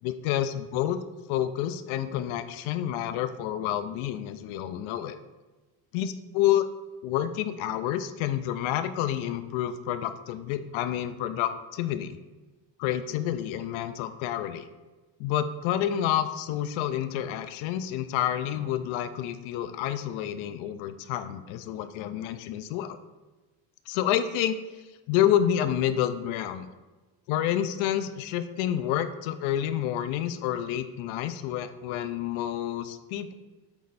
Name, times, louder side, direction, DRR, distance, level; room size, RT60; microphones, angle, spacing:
voice 1, 0.0-1.0 1.3-5.2 5.9-6.7 7.0-12.2 12.8-14.7 15.2-23.0 23.9-24.6 25.1-26.7 27.3-33.3, left 11 dB, 70° left, 11 dB, 0.6 m, -29 dB
8.3 x 3.2 x 4.0 m, 1.2 s
cardioid pair, 155°, 49 cm